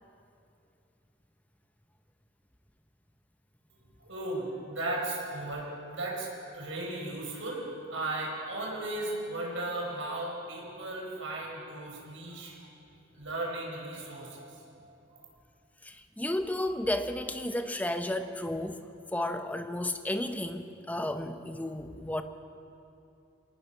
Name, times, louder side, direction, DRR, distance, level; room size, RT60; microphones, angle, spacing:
voice 1, 4.0-12.5 13.1-14.6, right 2 dB, 75° right, -1 dB, 4.8 m, -36 dB
voice 2, 15.8-18.8 19.1-22.2, left 1 dB, 10° left, 8 dB, 0.8 m, -33 dB
25.0 x 19.0 x 5.6 m, 2.7 s
head